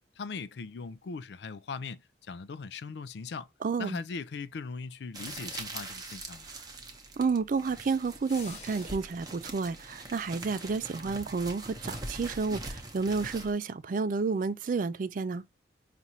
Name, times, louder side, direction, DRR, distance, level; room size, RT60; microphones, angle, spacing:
voice 1, 0.2-3.5 3.8-6.5, left 4 dB, 65° left, 0.4 m, -39 dB
voice 2, 3.6-4.0 7.2-15.4, right 4 dB, 45° right, 0.3 m, -30 dB
sound 1, 5.1-13.5, right 2 dB, 20° right, 0.8 m, -42 dB
sound 2, 8.3-9.3, left 4 dB, 40° left, 1.1 m, -49 dB
5.4 x 2.5 x 2.8 m
head